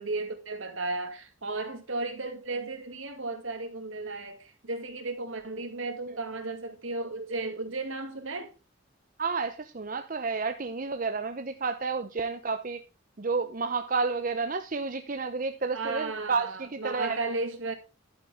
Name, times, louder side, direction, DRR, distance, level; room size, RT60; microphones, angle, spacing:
voice 1, 0.0-8.5 15.7-17.7, right 3 dB, 70° right, 2.3 m, -34 dB
voice 2, 9.2-12.8 13.2-17.2, right 4 dB, 40° right, 0.7 m, -30 dB
11.0 x 9.5 x 3.5 m
head